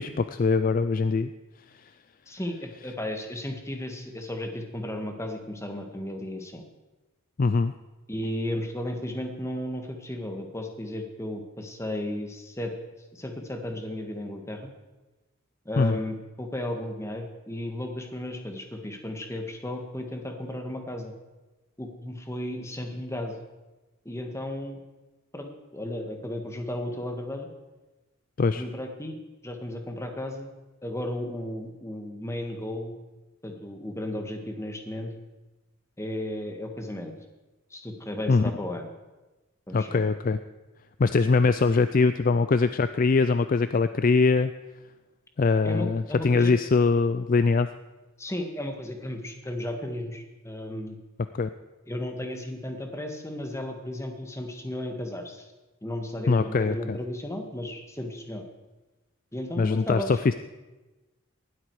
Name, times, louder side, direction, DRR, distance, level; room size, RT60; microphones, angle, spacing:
voice 1, 0.0-1.3 7.4-7.7 15.8-16.0 28.4-28.6 38.3-38.5 39.7-40.4 41.0-44.5 45.4-47.7 51.3-51.5 56.3-57.0 59.6-60.3, left 4 dB, 40° left, 12 dB, 0.4 m, -22 dB
voice 2, 2.3-6.6 8.1-12.7 13.1-14.7 15.7-21.1 21.8-23.4 24.1-24.8 25.3-27.5 28.5-29.2 29.4-30.5 30.8-33.0 33.4-35.1 36.0-37.1 37.7-38.9 39.7-40.0 45.6-46.5 48.2-51.0 51.9-55.5 55.8-58.4 59.3-60.1, left 1 dB, 15° left, 4 dB, 1.6 m, -34 dB
19.0 x 12.5 x 4.8 m, 1.1 s
head